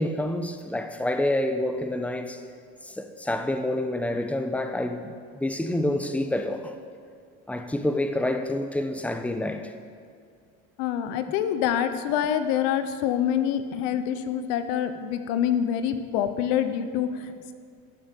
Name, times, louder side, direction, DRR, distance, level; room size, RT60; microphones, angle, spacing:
voice 1, 0.0-2.4 2.8-6.7 7.5-9.7, left 1 dB, 5° left, 1.0 m, -28 dB
voice 2, 10.8-17.5, left 9 dB, 85° left, 1.0 m, -26 dB
16.5 x 6.9 x 7.1 m
supercardioid pair, 90°, 34 cm